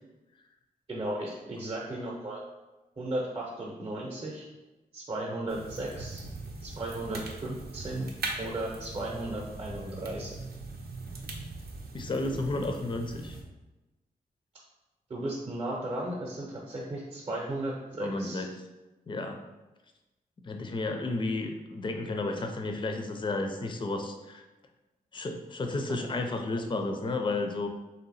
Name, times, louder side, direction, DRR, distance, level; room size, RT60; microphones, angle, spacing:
voice 1, 0.9-2.4 3.0-4.5 4.9-6.2 6.6-8.1 8.4-10.4 15.1-18.4 26.0-26.1, right 1 dB, 35° right, -2 dB, 0.7 m, -35 dB
sound 1, 5.5-13.4, right 3 dB, 85° right, 0.6 m, -41 dB
voice 2, 11.9-13.4 18.0-18.5 19.1-19.4 20.4-24.4 25.1-27.7, left 2 dB, 30° left, 4 dB, 0.4 m, -32 dB
3.4 x 2.7 x 4.0 m, 1.1 s
wide cardioid pair, 95°, 16 cm